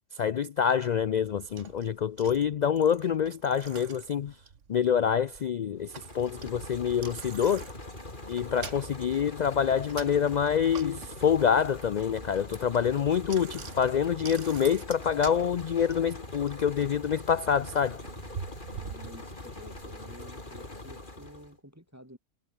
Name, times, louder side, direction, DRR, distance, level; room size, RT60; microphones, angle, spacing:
voice 1, 0.1-4.4 4.7-7.7 8.3-18.0, left 8 dB, 75° left, 0.4 m, -26 dB
Bicycle, 1.0-19.9, right 6 dB, 70° right, 1.7 m, -47 dB
sound 1, 5.8-21.6, left 2 dB, 40° left, 4.1 m, -43 dB
voice 2, 18.8-22.2, equal, 10° right, 7.5 m, -51 dB
omnidirectional pair, 1.3 m